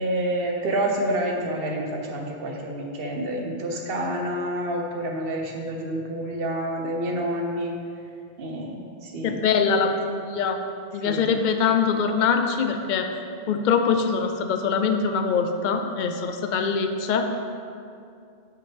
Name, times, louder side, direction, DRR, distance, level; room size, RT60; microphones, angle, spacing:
voice 1, 0.0-7.7 8.4-9.4 11.0-11.4, right 1 dB, 65° right, 1 dB, 1.1 m, -28 dB
voice 2, 9.2-10.6 10.9-13.1 13.5-17.2, left 5 dB, 55° left, 6 dB, 0.6 m, -23 dB
8.9 x 5.7 x 3.4 m, 2.5 s
omnidirectional pair, 1.0 m